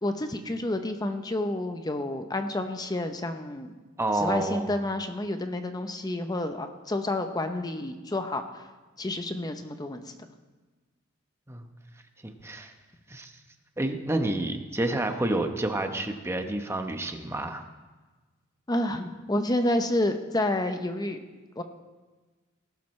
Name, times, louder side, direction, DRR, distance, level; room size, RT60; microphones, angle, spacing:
voice 1, 0.0-3.7 4.1-8.6 9.0-10.0 14.8-14.9 18.7-21.2 21.6-21.7, left 1 dB, 20° left, 7 dB, 0.7 m, -29 dB
voice 2, 4.0-4.7 11.5-11.7 12.2-12.7 13.1-13.3 13.8-17.7, right 1 dB, 15° right, 6 dB, 0.9 m, -29 dB
18.5 x 12.0 x 3.2 m, 1.3 s
head